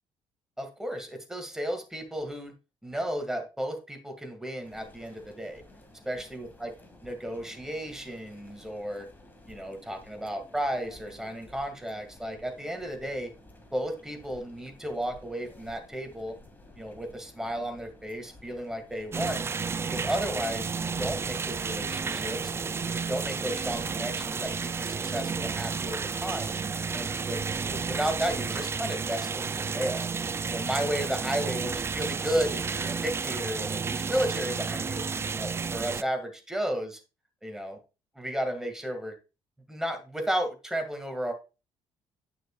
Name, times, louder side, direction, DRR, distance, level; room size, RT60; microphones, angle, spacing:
voice 1, 0.6-2.5 2.8-5.6 6.1-6.7 7.0-9.1 9.5-13.3 13.7-16.4 16.8-19.5 19.8-22.4 22.9-26.6 26.9-30.1 30.5-35.0 35.4-37.0 37.4-37.8 38.2-39.1 39.7-41.3, equal, 5° right, 5 dB, 2.1 m, -33 dB
sound 1, 4.6-24.5, left 1 dB, 20° left, 2.1 m, -53 dB
sound 2, 19.1-36.0, right 5 dB, 25° right, 0.3 m, -32 dB
9.2 x 6.4 x 2.4 m, 0.30 s
cardioid pair, 95°, 10 cm